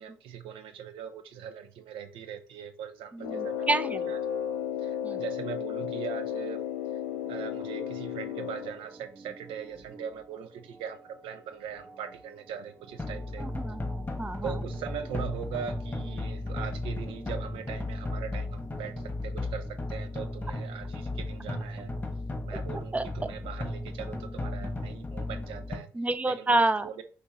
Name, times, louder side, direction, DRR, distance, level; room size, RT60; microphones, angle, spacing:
voice 1, 0.0-4.2 4.8-6.6 7.3-13.5 14.4-21.9 22.4-25.9 26.3-27.0, right 8 dB, 75° right, 11 dB, 0.4 m, -40 dB
Brass instrument, 3.2-8.8, left 9 dB, 90° left, 0.4 m, -33 dB
voice 2, 3.2-4.2 5.0-5.2 13.4-14.5 22.5-22.6 22.9-23.3 25.9-26.9, right 2 dB, 15° right, 13 dB, 0.5 m, -29 dB
Organ, 7.1-19.2, right 3 dB, 45° right, 1.6 m, -52 dB
sound 1, 13.0-25.8, left 2 dB, 15° left, 1.1 m, -35 dB
5.9 x 2.7 x 2.9 m, 0.40 s
hypercardioid pair, 50°, 9 cm